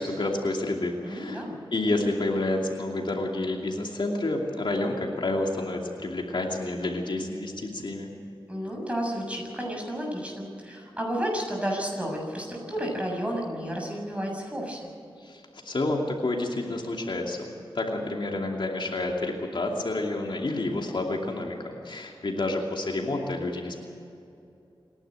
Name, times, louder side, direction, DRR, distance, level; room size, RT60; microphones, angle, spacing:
voice 1, 0.0-1.4 1.7-8.1 15.2-23.8, left 2 dB, 65° left, 1 dB, 2.7 m, -29 dB
voice 2, 1.0-1.6 8.5-14.9, equal, 15° right, 0 dB, 7.1 m, -32 dB
27.5 x 11.5 x 8.9 m, 2.7 s
wide cardioid pair, 70°, 9 cm